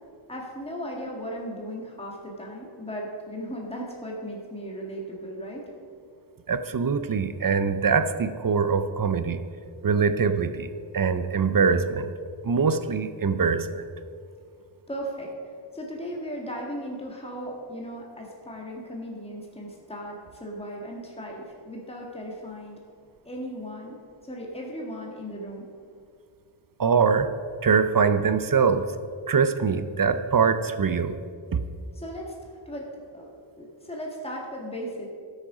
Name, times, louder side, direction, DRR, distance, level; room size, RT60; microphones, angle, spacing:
voice 1, 0.3-5.7 14.9-22.8 23.2-24.0 24.2-25.7 31.9-32.3 32.7-33.3 33.6-35.1, equal, 10° left, -2 dB, 1.9 m, -36 dB
voice 2, 6.5-9.4 9.8-12.1 12.4-13.8 26.8-27.3 27.6-28.9 29.3-31.1 31.5-31.6, right 5 dB, 45° right, 11 dB, 0.7 m, -23 dB
13.0 x 6.6 x 5.0 m, 2.2 s
wide cardioid pair, 60°, 47 cm